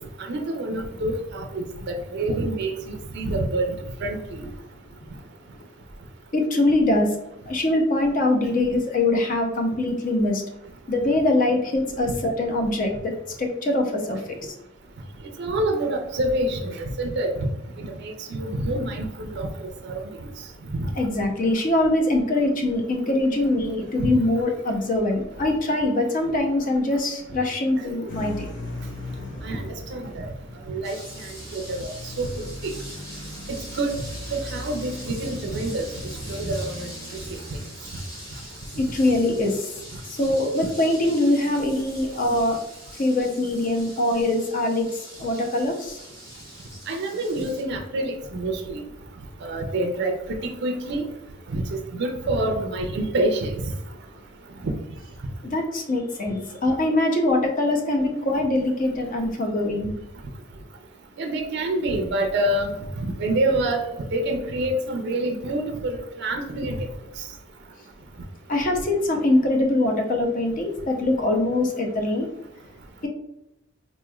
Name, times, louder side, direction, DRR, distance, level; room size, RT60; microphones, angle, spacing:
voice 1, 0.2-3.8 4.0-4.4 15.4-17.5 17.8-19.5 19.8-20.0 20.7-20.9 29.4-30.3 30.7-31.9 32.2-32.3 32.6-32.7 33.5-34.0 34.3-35.8 36.3-36.9 37.3-37.4 46.9-48.8 49.4-50.2 50.4-51.0 51.5-53.5 54.6-54.7 61.2-62.7 63.0-63.8 64.1-66.8, right 1 dB, 55° right, 4 dB, 0.4 m, -27 dB
voice 2, 6.3-7.1 7.5-10.4 10.9-14.5 21.0-28.5 38.8-39.7 40.1-42.6 43.0-44.9 45.2-46.0 55.5-59.9 68.5-72.3, left 2 dB, 40° left, 3 dB, 0.6 m, -23 dB
sound 1, 28.1-39.6, left 1 dB, 60° left, 0.9 m, -39 dB
sound 2, 30.8-47.6, equal, 15° left, 1.1 m, -43 dB
4.2 x 3.0 x 2.3 m, 0.87 s
head